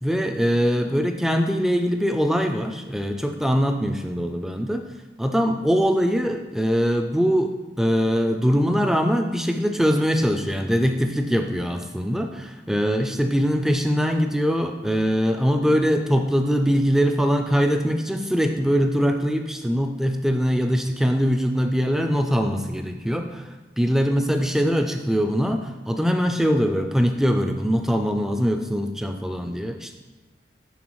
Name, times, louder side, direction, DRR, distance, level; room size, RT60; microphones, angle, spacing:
voice 1, 0.0-4.8 5.2-7.5 7.8-29.9, equal, ahead, 5 dB, 0.3 m, -22 dB
10.0 x 3.7 x 3.1 m, 1.2 s
head